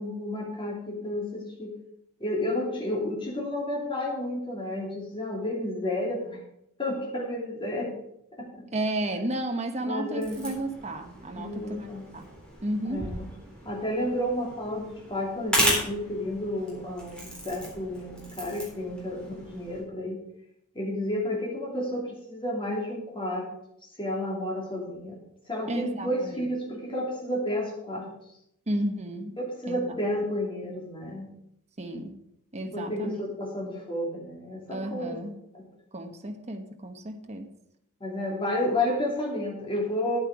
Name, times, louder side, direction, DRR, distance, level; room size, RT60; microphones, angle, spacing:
voice 1, 0.0-1.7 2.2-6.4 6.8-7.9 8.4-8.5 9.9-10.4 11.3-12.0 12.8-13.3 13.6-20.2 20.7-23.5 24.0-25.1 25.5-28.0 29.4-31.3 32.6-35.2 35.5-35.6 38.0-40.2, left 1 dB, 25° left, -2 dB, 2.7 m, -31 dB
voice 2, 8.7-11.9 12.1-12.3 12.6-13.1 25.7-26.5 28.7-29.3 29.7-30.0 31.8-32.1 32.5-33.2 34.7-35.4 35.9-37.5, right 1 dB, 30° right, 5 dB, 1.1 m, -32 dB
sound 1, 10.2-19.8, equal, 5° left, 3.9 m, -34 dB
9.6 x 8.9 x 4.8 m, 0.78 s
head